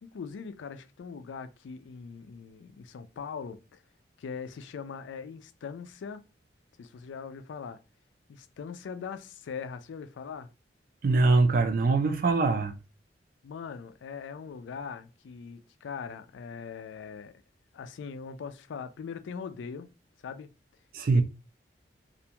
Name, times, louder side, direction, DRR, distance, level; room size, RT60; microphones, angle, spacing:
voice 1, 0.0-3.8 4.2-6.2 6.8-7.8 8.3-10.5 13.4-17.3 17.7-19.9 20.2-20.5 21.1-21.2, left 6 dB, 85° left, 0.3 m, -41 dB
voice 2, 11.0-12.7 20.9-21.2, right 3 dB, 50° right, 0.4 m, -23 dB
2.5 x 2.2 x 2.8 m
head